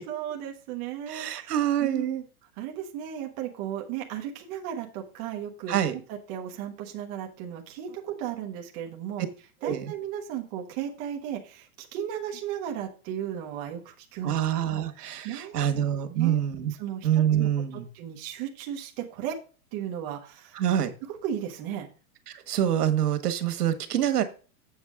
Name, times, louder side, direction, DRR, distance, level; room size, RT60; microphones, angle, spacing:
voice 1, 0.1-2.1 2.6-9.2 9.6-14.3 14.7-15.7 16.0-16.4 16.8-17.5 17.9-19.4 19.7-20.6 21.1-21.9, right 10 dB, 20° right, 1 dB, 0.9 m, -35 dB
voice 2, 1.1-2.2 5.7-5.9 9.6-9.9 14.2-16.7 17.0-17.8 20.6-20.9 22.3-24.2, right 10 dB, 85° right, 10 dB, 1.5 m, -26 dB
7.7 x 7.4 x 3.6 m, 0.36 s
supercardioid pair, 170°, 45 cm